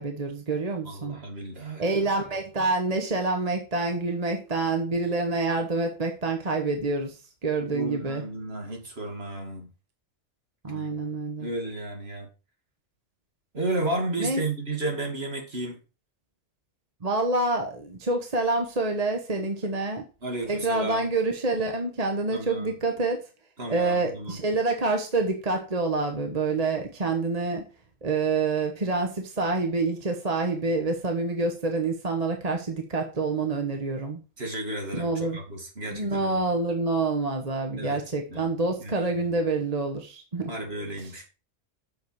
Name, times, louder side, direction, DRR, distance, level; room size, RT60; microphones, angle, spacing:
voice 1, 0.0-1.2 1.8-7.2 7.4-8.2 10.6-11.5 14.2-14.4 17.0-20.0 20.4-23.3 23.7-27.6 28.0-34.2 34.9-35.4 35.9-40.5, right 3 dB, 35° right, 1.2 m, -27 dB
voice 2, 0.8-2.0 7.6-9.7 10.7-12.3 13.5-15.8 20.2-21.1 22.3-22.7 23.6-24.4 34.4-36.4 37.8-38.0 38.3-38.5 38.8-38.9 39.2-39.3 40.5-41.3, right 2 dB, 55° right, 2.6 m, -33 dB
8.1 x 6.5 x 4.7 m
omnidirectional pair, 1.3 m